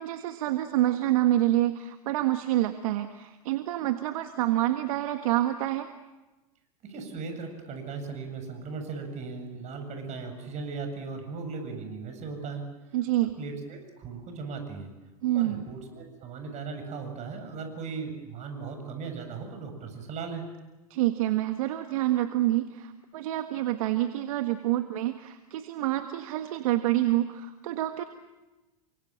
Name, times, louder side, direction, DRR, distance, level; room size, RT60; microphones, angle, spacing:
voice 1, 0.0-5.9 12.9-13.3 15.2-15.6 20.9-28.0, right 14 dB, 65° right, 8 dB, 1.6 m, -27 dB
voice 2, 6.8-12.6 13.4-14.9 15.3-20.4, right 4 dB, 40° right, 6 dB, 7.7 m, -37 dB
29.0 x 25.0 x 7.6 m, 1.1 s
hypercardioid pair, 100°, 19 cm